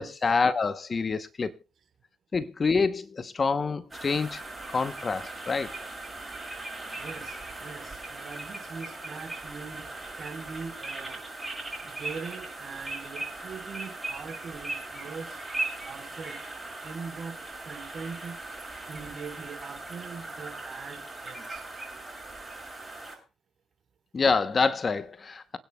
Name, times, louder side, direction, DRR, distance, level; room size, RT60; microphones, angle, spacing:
voice 1, 0.0-1.5 2.3-4.4 4.7-5.8 24.1-25.6, left 4 dB, 40° left, 0.9 m, -27 dB
sound 1, 3.9-23.2, right 2 dB, 15° right, 6.9 m, -39 dB
voice 2, 6.9-11.2 11.8-15.4 15.8-16.5 16.8-17.4 17.6-18.6 18.9-21.6, right 5 dB, 50° right, 4.1 m, -42 dB
26.5 x 9.3 x 2.3 m
supercardioid pair, 65°, 0 cm